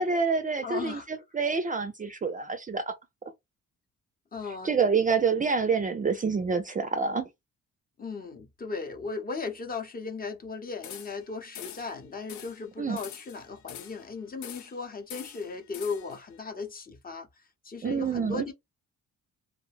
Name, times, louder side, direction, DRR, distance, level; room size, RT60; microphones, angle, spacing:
voice 1, 0.0-2.9 4.6-7.3 12.8-13.0 17.8-18.4, right 5 dB, 25° right, 0.4 m, -27 dB
voice 2, 0.6-1.1 4.3-4.8 8.0-17.3 17.6-18.5, left 4 dB, 30° left, 0.7 m, -37 dB
sound 1, 10.8-11.3 11.5-11.9 12.3-12.6 13.0-14.1 14.4-14.8 15.1-16.2, left 10 dB, 70° left, 0.6 m, -44 dB
2.5 x 2.1 x 3.3 m
cardioid pair, 90°, 30 cm